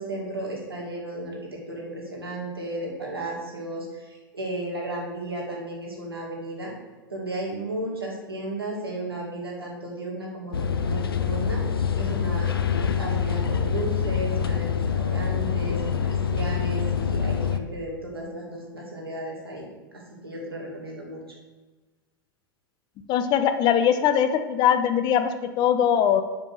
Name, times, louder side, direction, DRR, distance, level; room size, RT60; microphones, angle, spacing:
voice 1, 0.0-6.7 7.1-11.6 11.9-12.5 12.8-14.7 14.9-19.7 20.2-21.2, right 1 dB, 85° right, -3 dB, 2.2 m, -34 dB
sound 1, 10.5-17.6, left 7 dB, 75° left, 0.5 m, -25 dB
voice 2, 23.1-26.2, left 9 dB, 35° left, 9 dB, 0.7 m, -21 dB
5.4 x 5.2 x 6.3 m, 1.3 s
figure-of-eight pair, 95°, 12 cm